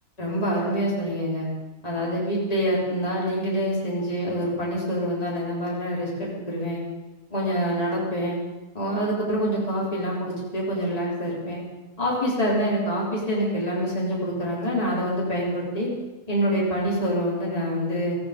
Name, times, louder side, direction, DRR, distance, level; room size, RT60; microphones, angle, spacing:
voice 1, 0.2-1.5 1.8-6.8 7.3-8.4 8.7-11.6 12.0-15.9 16.3-18.2, equal, 25° left, -6 dB, 4.1 m, -26 dB
17.5 x 15.5 x 5.3 m, 1.2 s
omnidirectional pair, 1.6 m